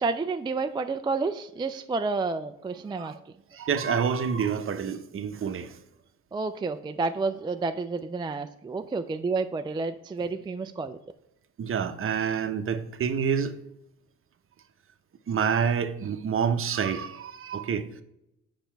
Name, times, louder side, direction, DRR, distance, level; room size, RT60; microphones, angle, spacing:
voice 1, 0.0-3.3 6.3-11.0, right 4 dB, 15° right, 0.3 m, -30 dB
voice 2, 3.5-5.8 11.6-13.5 15.3-18.0, right 7 dB, 45° right, 0.8 m, -28 dB
7.2 x 5.2 x 4.4 m
cardioid pair, 90°, 30 cm